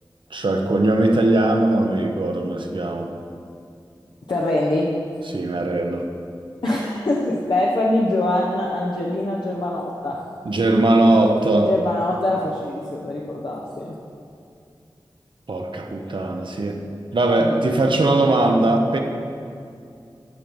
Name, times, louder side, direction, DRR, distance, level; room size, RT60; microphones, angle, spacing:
voice 1, 0.3-3.1 5.3-6.1 10.4-11.7 15.5-16.8 17.1-19.0, right 2 dB, 70° right, 3 dB, 0.8 m, -19 dB
voice 2, 4.3-4.9 6.6-10.2 11.1-11.2 11.6-14.0 17.4-17.6, left 1 dB, 65° left, -3 dB, 0.9 m, -23 dB
13.0 x 4.6 x 5.4 m, 2.5 s
wide cardioid pair, 70°, 9 cm